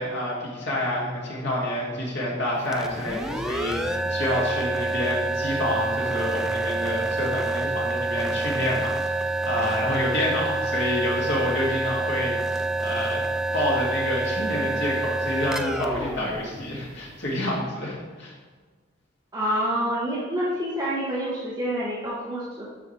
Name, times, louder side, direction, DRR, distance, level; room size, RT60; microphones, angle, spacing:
voice 1, 0.0-13.2 13.5-18.3, left 1 dB, 60° left, -4 dB, 2.5 m, -28 dB
sound 1, 2.6-17.3, right 2 dB, 5° right, 0.3 m, -28 dB
voice 2, 19.3-22.7, equal, 20° right, -8 dB, 1.3 m, -27 dB
12.0 x 5.0 x 3.4 m, 1.5 s
head